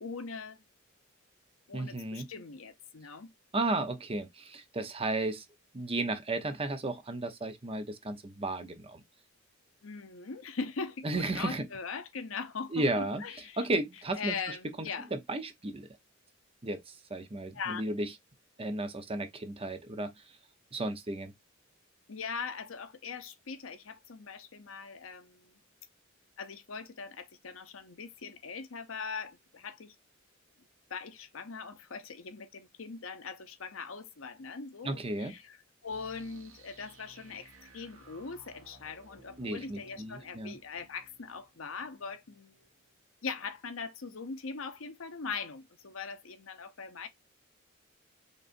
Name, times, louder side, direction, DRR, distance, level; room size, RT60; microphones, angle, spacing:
voice 1, 0.0-0.6 1.7-3.3 9.8-13.7 14.2-15.1 17.5-17.8 22.1-25.6 26.4-30.0 30.9-35.6 35.8-42.7 43.2-47.1, left 5 dB, 70° left, 0.8 m, -41 dB
voice 2, 1.7-2.3 3.5-5.4 5.7-9.0 11.0-11.7 12.7-13.2 13.6-14.6 15.1-15.9 16.6-18.1 18.6-20.1 20.7-21.3 34.8-35.3 39.4-40.5, right 2 dB, 30° right, 0.8 m, -34 dB
sound 1, 35.8-42.7, right 2 dB, 75° right, 1.6 m, -58 dB
5.1 x 3.3 x 2.6 m
head